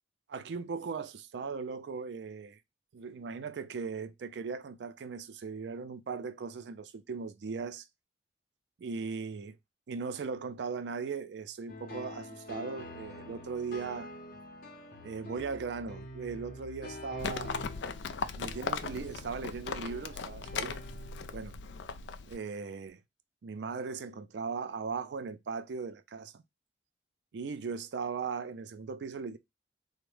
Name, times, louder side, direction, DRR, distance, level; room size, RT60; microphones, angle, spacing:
voice 1, 0.3-2.6 2.9-7.9 8.8-9.6 9.9-14.1 15.0-17.5 18.4-20.8 21.3-21.6 22.3-23.0 23.4-26.4 27.3-29.4, right 5 dB, 70° right, 0.4 m, -38 dB
sound 1, 11.7-21.5, left 1 dB, 55° left, 0.8 m, -47 dB
Livestock farm animals working animals, 17.2-22.4, left 5 dB, 80° left, 0.4 m, -38 dB
3.4 x 2.0 x 3.2 m
head